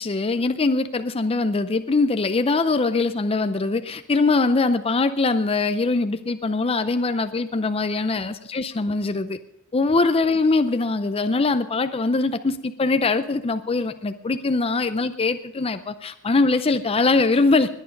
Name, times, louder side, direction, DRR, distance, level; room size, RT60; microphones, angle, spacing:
voice 1, 0.0-9.4 9.7-17.7, left 3 dB, 25° left, 10 dB, 0.5 m, -22 dB
20.5 x 9.3 x 5.2 m, 0.76 s
head